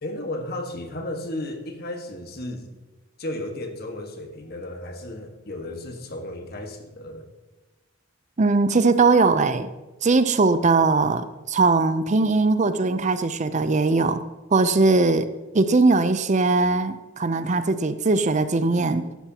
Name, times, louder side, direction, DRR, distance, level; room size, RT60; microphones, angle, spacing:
voice 1, 0.0-2.7 3.2-7.3, left 1 dB, 50° left, 4 dB, 1.5 m, -34 dB
voice 2, 8.4-9.7 10.0-14.2 14.5-15.3 15.5-19.0, right 3 dB, 35° right, 11 dB, 0.5 m, -20 dB
14.5 x 11.5 x 2.9 m, 1.1 s
head